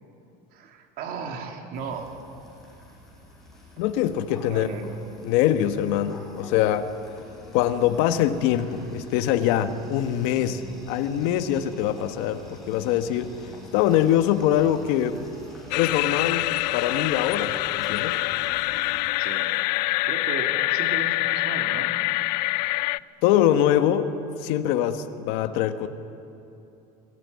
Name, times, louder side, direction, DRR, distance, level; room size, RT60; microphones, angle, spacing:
voice 1, 0.5-2.3 4.5-5.0 19.2-19.5 20.0-22.0, right 5 dB, 45° right, 4 dB, 3.1 m, -36 dB
sound 1, 1.7-19.0, left 1 dB, ahead, 6.3 m, -46 dB
voice 2, 3.8-4.7 5.2-6.9 7.5-10.6 10.9-13.3 13.7-15.3 15.8-18.2 23.2-24.1 24.4-25.9, left 11 dB, 60° left, 9 dB, 1.5 m, -23 dB
sound 2, 15.7-23.0, left 21 dB, 90° left, 0.5 m, -25 dB
27.0 x 20.5 x 9.7 m, 2.7 s
cardioid pair, 165°, 21 cm